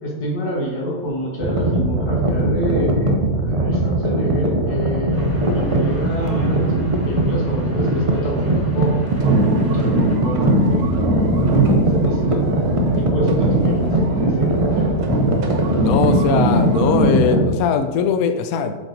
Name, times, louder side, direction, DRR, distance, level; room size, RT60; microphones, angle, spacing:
voice 1, 0.0-6.7 7.1-10.9 11.5-14.9, equal, 90° left, -2 dB, 2.3 m, -27 dB
sound 1, 1.4-17.5, right 1 dB, 55° right, 0.3 m, -20 dB
sound 2, 5.1-10.2, equal, 10° left, 0.8 m, -37 dB
sound 3, 9.1-13.0 13.3-17.3, right 1 dB, 75° right, 1.5 m, -22 dB
voice 2, 15.8-18.8, left 6 dB, 70° left, 8 dB, 0.9 m, -20 dB
7.4 x 4.6 x 3.9 m, 1.2 s
omnidirectional pair, 1.8 m